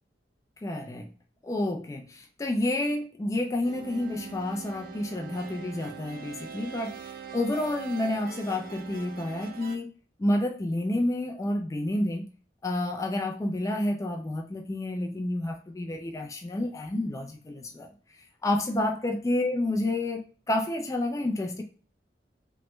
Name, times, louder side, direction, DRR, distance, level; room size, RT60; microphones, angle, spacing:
voice 1, 0.6-1.1 1.4-9.9 10.2-12.3 12.6-17.9 18.4-21.6, left 1 dB, 20° left, 2 dB, 0.3 m, -29 dB
sound 1, 3.6-9.8, right 6 dB, 55° right, 0.4 m, -42 dB
3.1 x 2.2 x 3.0 m, 0.39 s
head